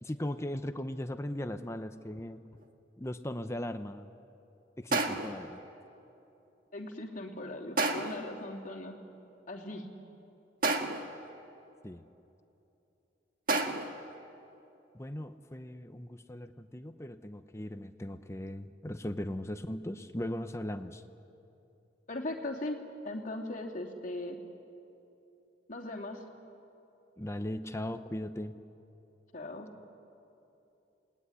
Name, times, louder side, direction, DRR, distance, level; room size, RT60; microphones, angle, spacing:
voice 1, 0.0-2.4 3.0-4.1 4.8-5.6 11.8-12.0 14.9-21.0 27.2-28.6, left 1 dB, 15° left, 9 dB, 0.7 m, -38 dB
sound 1, 2.6-2.7 4.9-5.5 7.8-8.3 10.6-11.2 13.5-14.1, right 3 dB, 50° right, 1.7 m, -30 dB
voice 2, 6.7-9.0 9.5-9.9 22.1-22.8 23.0-24.4 25.7-26.2 29.3-29.7, left 1 dB, 45° left, 0 dB, 2.9 m, -39 dB
29.0 x 20.0 x 9.9 m, 2.9 s
head